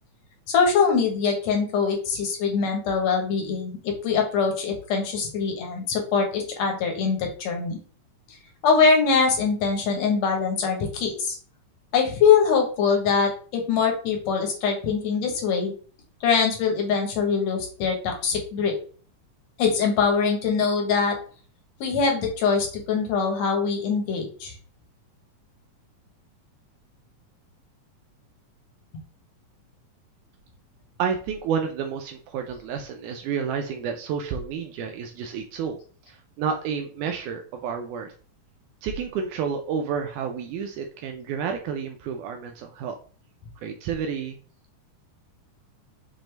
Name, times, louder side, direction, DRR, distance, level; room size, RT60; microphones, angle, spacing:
voice 1, 0.5-7.8 8.6-11.4 11.9-15.7 16.2-18.7 19.6-21.2 21.8-24.5, left 5 dB, 65° left, 2 dB, 1.9 m, -23 dB
voice 2, 31.0-35.8 36.1-38.1 38.8-43.0 43.6-44.4, right 6 dB, 80° right, 4 dB, 1.9 m, -30 dB
6.2 x 2.6 x 3.2 m, 0.41 s
omnidirectional pair, 3.8 m